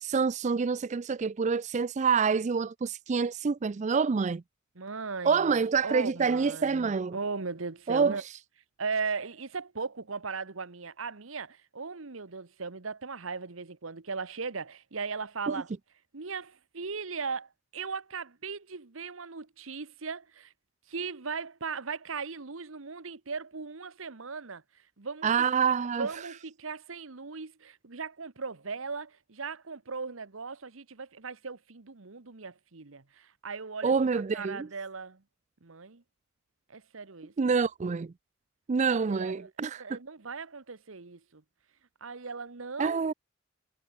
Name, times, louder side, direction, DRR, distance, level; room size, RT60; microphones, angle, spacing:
voice 1, 0.0-4.4 5.2-7.2 7.9-8.2 15.5-15.6 25.2-26.1 33.8-34.7 37.4-38.1 38.7-40.0 42.8-43.1, right 5 dB, 35° right, 0.4 m, -27 dB
voice 2, 4.7-5.5 5.8-8.2 8.8-15.7 16.1-20.5 20.9-24.6 25.0-25.3 26.0-33.9 34.3-35.2 35.6-36.0 36.7-37.3 39.0-39.5 39.7-41.4 42.0-43.0, right 4 dB, 80° right, 1.2 m, -38 dB
head